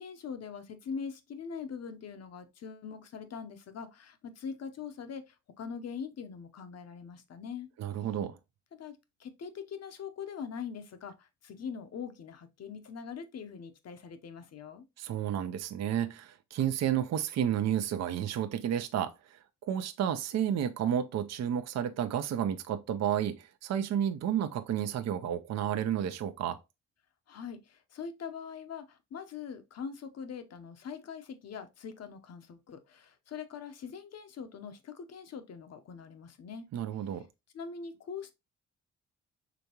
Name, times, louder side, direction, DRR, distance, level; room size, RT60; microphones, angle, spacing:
voice 1, 0.0-7.7 8.8-14.8 27.3-36.7 37.5-38.3, left 6 dB, 55° left, 0.9 m, -42 dB
voice 2, 7.8-8.4 15.0-26.6 36.7-37.3, right 9 dB, 60° right, 0.6 m, -31 dB
5.1 x 3.4 x 2.9 m
cardioid pair, 90°, 30 cm